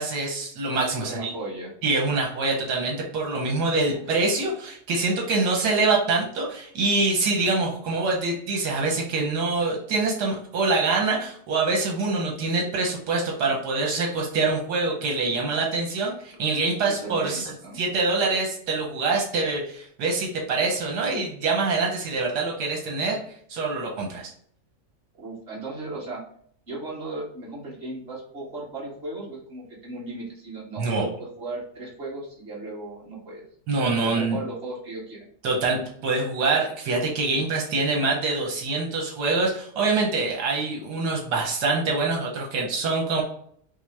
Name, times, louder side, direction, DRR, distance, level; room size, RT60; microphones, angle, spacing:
voice 1, 0.0-1.3 1.8-23.2 23.5-24.3 30.8-31.1 33.7-34.4 35.4-43.2, right 3 dB, 85° right, 0 dB, 1.5 m, -25 dB
voice 2, 1.0-1.7 3.9-4.0 16.8-17.8 25.2-26.2 26.7-33.5 34.0-35.2 37.3-37.5, right 2 dB, 40° right, -6 dB, 1.8 m, -36 dB
6.2 x 2.1 x 3.3 m, 0.62 s
omnidirectional pair, 1.7 m